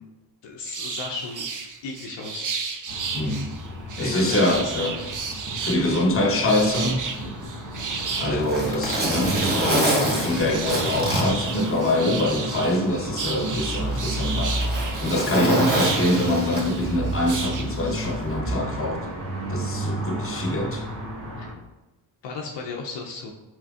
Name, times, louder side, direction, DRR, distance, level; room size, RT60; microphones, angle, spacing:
voice 1, 0.4-1.5 1.8-2.5 4.0-5.1 8.3-8.5 21.4-21.5 22.2-23.3, left 4 dB, 65° left, 0 dB, 0.7 m, -34 dB
sound 1, 0.7-18.1, right 5 dB, 45° right, 0.7 m, -33 dB
sound 2, 2.9-21.5, right 1 dB, 75° right, 1.5 m, -33 dB
voice 2, 3.1-3.5 4.0-5.0 5.6-7.1 8.2-14.6 15.0-19.1 19.5-20.8, left 1 dB, 30° left, 2 dB, 1.0 m, -24 dB
Zipper (clothing), 7.8-12.3 12.6-12.7 13.5-17.0 18.2-18.4, right 1 dB, 20° right, 1.4 m, -26 dB
4.8 x 3.8 x 2.4 m, 1.1 s
supercardioid pair, 50°, 46 cm